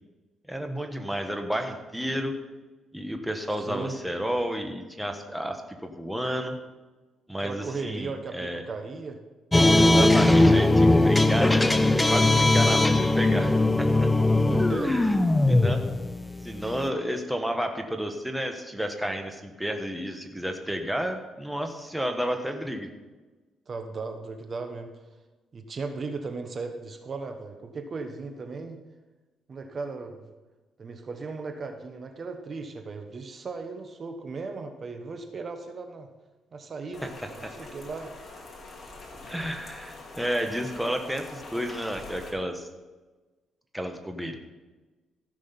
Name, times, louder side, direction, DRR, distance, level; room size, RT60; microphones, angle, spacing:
voice 1, 0.5-2.4 2.9-6.6 7.3-8.6 9.7-14.1 14.8-15.1 15.5-15.8 16.4-22.9 37.4-37.5 39.3-42.7 43.7-44.4, equal, 5° right, 5 dB, 1.4 m, -31 dB
voice 2, 3.6-4.0 7.4-9.2 14.3-15.1 23.7-24.9 25.5-28.8 29.5-30.3 30.8-36.1 36.5-38.1, right 4 dB, 45° right, 6 dB, 1.2 m, -37 dB
sound 1, 9.5-16.9, left 2 dB, 15° left, 0.6 m, -20 dB
Rain, 36.9-42.3, left 3 dB, 40° left, 2.7 m, -44 dB
15.0 x 6.2 x 5.9 m, 1.2 s
cardioid pair, 90°, 0 cm